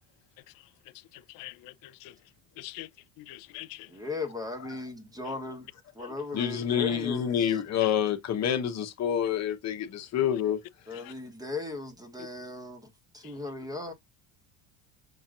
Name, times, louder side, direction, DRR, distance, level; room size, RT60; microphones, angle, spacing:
voice 1, 1.1-2.1 2.6-2.9 3.2-3.9 6.0-6.1 10.2-10.3 10.9-11.1 13.2-13.3, left 18 dB, 65° left, 0.5 m, -44 dB
voice 2, 3.9-5.7 5.9-7.6 10.9-12.9 13.1-13.9, left 3 dB, 10° right, 1.2 m, -37 dB
voice 3, 6.3-10.6, left 9 dB, 45° left, 1.0 m, -27 dB
6.5 x 2.9 x 2.5 m
cardioid pair, 120°, 38 cm